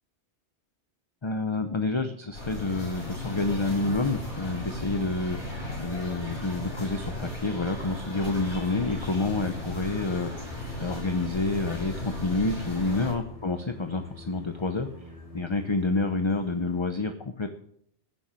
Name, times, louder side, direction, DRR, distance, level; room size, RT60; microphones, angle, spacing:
voice 1, 1.2-5.4 5.8-10.5 10.8-14.9 15.3-17.5, left 3 dB, 30° left, 7 dB, 0.8 m, -28 dB
sound 1, 2.3-13.1, left 1 dB, 65° left, 8.1 m, -36 dB
sound 2, 6.9-16.8, left 1 dB, 85° left, 4.7 m, -55 dB
Singing, 8.2-16.1, left 4 dB, 20° right, 2.1 m, -47 dB
15.0 x 7.1 x 7.6 m, 0.67 s
omnidirectional pair, 1.2 m